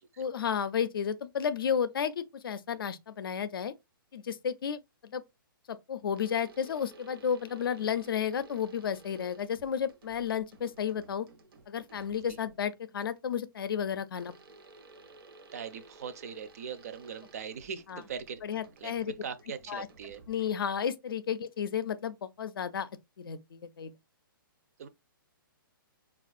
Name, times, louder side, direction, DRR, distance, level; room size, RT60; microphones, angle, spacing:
voice 1, 0.2-3.7 4.1-5.2 5.7-11.3 11.7-14.4 17.9-18.0 18.4-19.1 19.7-19.9 20.3-22.9 23.2-23.9, left 8 dB, 75° left, 0.5 m, -32 dB
sound 1, 6.2-12.8 14.2-20.8, right 2 dB, 85° right, 0.7 m, -55 dB
voice 2, 15.5-18.4 18.8-18.9 19.2-20.2 24.8-24.9, right 7 dB, 40° right, 0.4 m, -40 dB
4.3 x 2.4 x 2.4 m
hypercardioid pair, 170°, 12 cm